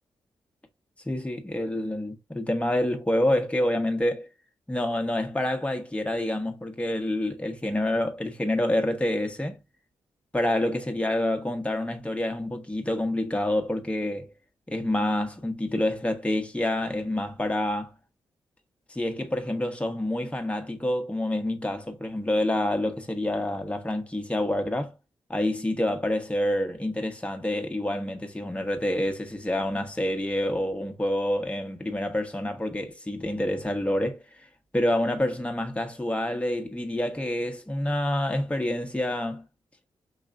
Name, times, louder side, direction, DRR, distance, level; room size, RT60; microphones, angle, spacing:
voice 1, 1.0-4.3 4.7-9.6 10.3-14.3 14.7-17.9 18.9-24.9 25.3-34.5 34.7-39.4, left 1 dB, 10° left, 1.1 m, -27 dB
4.8 x 3.0 x 2.5 m
hypercardioid pair, 40°, 11 cm